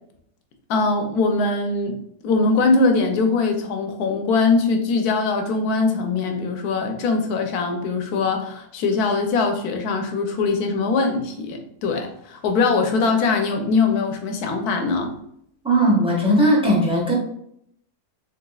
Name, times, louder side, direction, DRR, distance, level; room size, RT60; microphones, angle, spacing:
voice 1, 0.7-15.1, left 3 dB, 80° left, 5 dB, 1.2 m, -22 dB
voice 2, 15.6-17.1, right 1 dB, 5° right, -5 dB, 0.8 m, -18 dB
3.9 x 3.4 x 2.3 m, 0.72 s
omnidirectional pair, 1.6 m